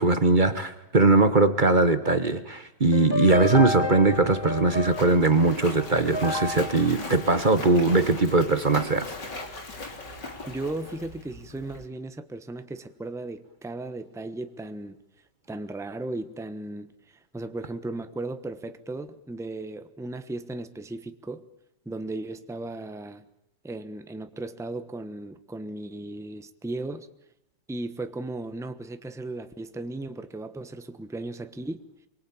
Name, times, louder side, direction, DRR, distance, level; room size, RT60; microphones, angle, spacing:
voice 1, 0.0-9.1, right 3 dB, 30° right, 1.2 m, -21 dB
sound 1, 2.9-8.2, left 2 dB, 15° left, 1.6 m, -32 dB
Splash splatter, 4.0-11.9, left 2 dB, 65° left, 3.9 m, -40 dB
voice 2, 10.5-15.0 15.5-21.4 21.8-23.2 23.6-27.1 27.7-31.8, right 2 dB, ahead, 0.7 m, -36 dB
25.0 x 23.5 x 8.7 m
omnidirectional pair, 2.0 m